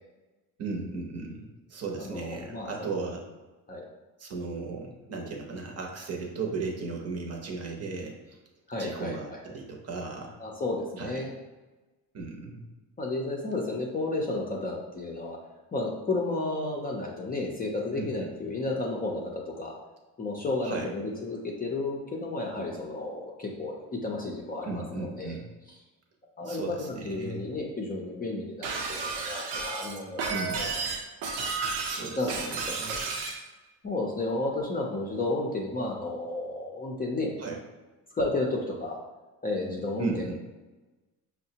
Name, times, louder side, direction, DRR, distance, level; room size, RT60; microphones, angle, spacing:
voice 1, 0.6-3.2 4.2-8.4 8.8-10.4 11.0-11.3 12.1-12.6 17.9-18.3 20.6-20.9 24.7-25.5 26.4-27.5 30.3-30.6 31.9-32.3 32.8-33.0 37.4-37.6 40.0-40.4, right 4 dB, 40° right, 0 dB, 0.8 m, -36 dB
voice 2, 1.9-3.0 3.7-3.8 8.7-9.4 10.4-11.3 13.0-15.4 15.7-19.8 20.2-25.4 26.4-30.7 32.2-33.1 33.8-37.4 38.1-39.0 39.4-40.4, left 2 dB, 20° left, -1 dB, 0.5 m, -32 dB
Shatter, 28.6-33.4, right 4 dB, 80° right, 0.8 m, -32 dB
5.4 x 2.1 x 2.7 m, 1.2 s
cardioid pair, 115°, 40 cm